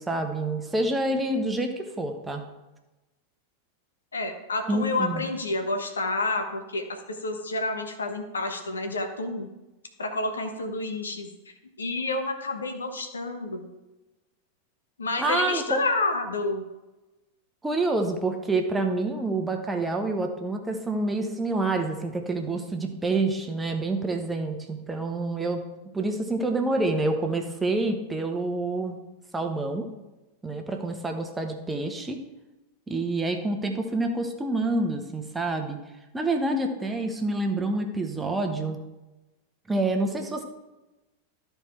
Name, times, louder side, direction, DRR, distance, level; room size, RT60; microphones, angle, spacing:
voice 1, 0.0-2.4 4.7-5.2 15.2-15.8 17.6-25.6 25.9-29.0 29.3-29.9 30.4-32.2 32.9-35.8 36.1-38.8 39.7-40.4, right 2 dB, 10° right, 4 dB, 1.1 m, -27 dB
voice 2, 4.1-9.5 10.0-11.3 11.8-13.7 15.0-16.6, left 2 dB, 75° left, 5 dB, 1.2 m, -29 dB
13.0 x 4.6 x 4.4 m, 1.1 s
figure-of-eight pair, 90°, 0 cm